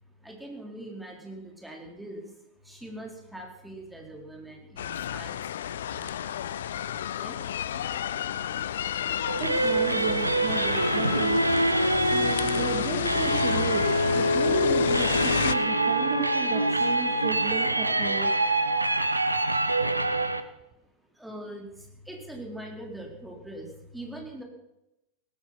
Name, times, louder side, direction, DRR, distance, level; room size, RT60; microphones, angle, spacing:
voice 1, 0.2-2.3 2.6-5.4 6.0-6.1 7.2-7.4 21.2-21.7 22.0-24.4, right 1 dB, 5° right, 1 dB, 4.1 m, -42 dB
sound 1, 4.8-15.5, left 10 dB, 60° left, 0.6 m, -31 dB
sound 2, 9.3-20.4, right 1 dB, 85° right, 1.0 m, -25 dB
voice 2, 9.4-11.4 12.1-18.3, right 7 dB, 35° right, 2 dB, 2.6 m, -34 dB
17.5 x 14.0 x 5.9 m, 0.89 s
figure-of-eight pair, 90°, 0 cm